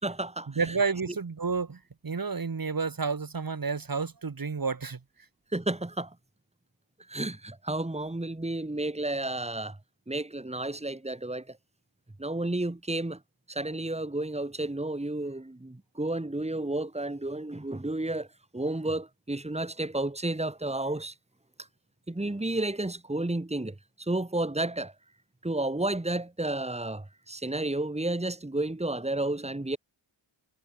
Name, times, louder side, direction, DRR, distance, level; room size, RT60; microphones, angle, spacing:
voice 1, 0.0-0.8 5.5-6.1 7.1-9.8 10.1-11.6 12.2-13.2 13.5-18.3 18.5-21.1 22.1-24.9 25.4-29.8, right 2 dB, 15° right, 3.8 m, -31 dB
voice 2, 0.6-5.0, right 5 dB, 45° right, 5.1 m, -30 dB
cardioid pair, 80°, 48 cm